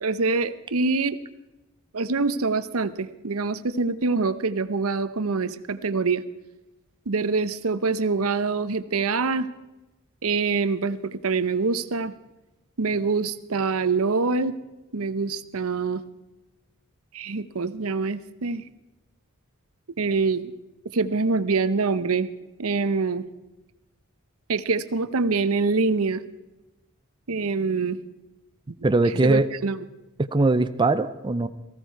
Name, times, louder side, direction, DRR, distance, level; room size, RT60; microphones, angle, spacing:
voice 1, 0.0-1.2 1.9-6.2 7.1-9.5 10.2-12.1 12.8-14.6 14.9-16.0 17.1-18.6 20.0-20.5 20.9-22.3 22.6-23.2 24.5-26.2 27.3-28.0 29.1-29.8, right 4 dB, 85° right, 13 dB, 0.8 m, -25 dB
voice 2, 28.8-29.5 30.2-31.5, right 2 dB, 20° right, 10 dB, 0.5 m, -21 dB
18.5 x 15.5 x 4.6 m, 1.0 s
head